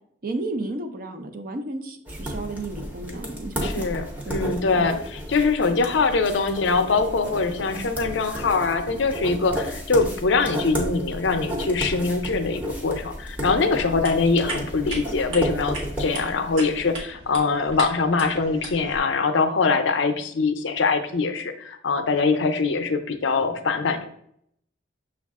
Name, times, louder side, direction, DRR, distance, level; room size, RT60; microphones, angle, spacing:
voice 1, 0.2-3.9 4.3-4.9, right 2 dB, 45° right, 6 dB, 0.5 m, -33 dB
sound 1, 2.1-16.9, equal, 10° right, 0.7 m, -33 dB
voice 2, 3.6-24.1, left 4 dB, 75° left, 7 dB, 0.5 m, -23 dB
sound 2, 13.8-19.0, right 1 dB, 80° right, 1.4 m, -37 dB
6.4 x 2.4 x 3.5 m, 0.70 s
head